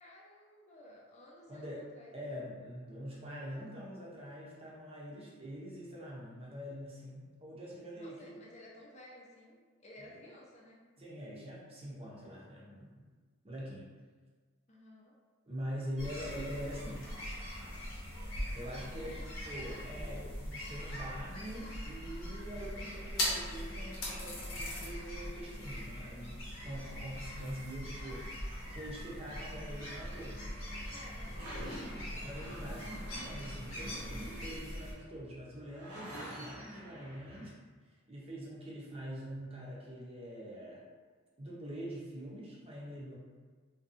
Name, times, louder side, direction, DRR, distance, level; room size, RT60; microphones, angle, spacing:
voice 1, 0.0-2.5 7.9-10.8 14.7-15.1 16.4-16.5 18.8-19.2 19.8-20.3 27.6-27.7 30.9-32.0, left 1 dB, 30° left, -4 dB, 0.5 m, -55 dB
voice 2, 1.5-1.8 2.1-8.3 10.0-10.2 11.0-13.0 13.4-13.9 15.4-17.1 18.5-30.4 32.2-37.5 38.1-40.8 41.4-43.1, equal, 30° right, -5 dB, 0.6 m, -44 dB
sound 1, 16.0-34.9, equal, 70° left, 0.8 m, -41 dB
sound 2, 29.7-37.5, equal, 80° right, 0.7 m, -48 dB
2.6 x 2.2 x 2.5 m, 1.5 s
head